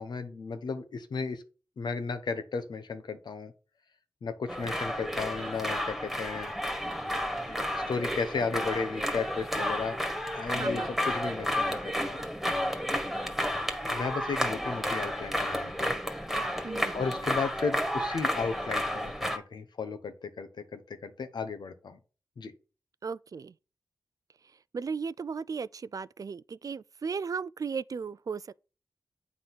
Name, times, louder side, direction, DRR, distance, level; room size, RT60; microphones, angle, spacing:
voice 1, 0.0-1.4 1.8-3.5 4.2-6.5 7.5-10.0 10.3-12.2 13.9-15.9 16.9-22.0 22.4-22.5, left 5 dB, 75° left, 1.1 m, -34 dB
sound 1, 4.5-19.4, equal, ahead, 1.7 m, -31 dB
voice 2, 10.5-10.9 16.6-17.1 23.0-23.5 24.7-28.5, right 5 dB, 50° right, 0.3 m, -36 dB
8.2 x 3.7 x 6.0 m
cardioid pair, 45°, 7 cm